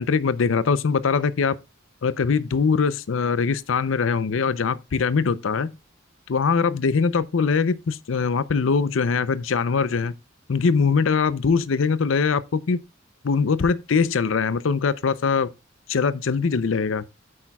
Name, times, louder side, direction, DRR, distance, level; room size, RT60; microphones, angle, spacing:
voice 1, 0.0-1.5 2.0-5.7 6.3-10.1 10.5-12.8 13.2-15.5 15.9-17.0, left 5 dB, 80° left, 0.5 m, -22 dB
10.0 x 8.6 x 2.3 m
head